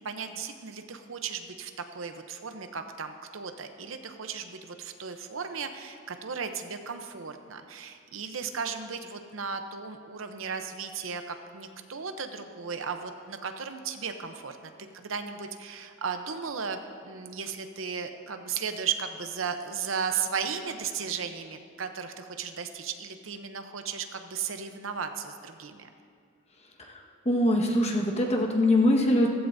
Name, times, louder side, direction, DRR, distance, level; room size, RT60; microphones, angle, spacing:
voice 1, 0.0-25.9, right 6 dB, 70° right, 7 dB, 0.8 m, -35 dB
voice 2, 26.8-29.3, left 1 dB, 35° left, 0 dB, 1.5 m, -23 dB
15.5 x 15.0 x 2.7 m, 2.2 s
head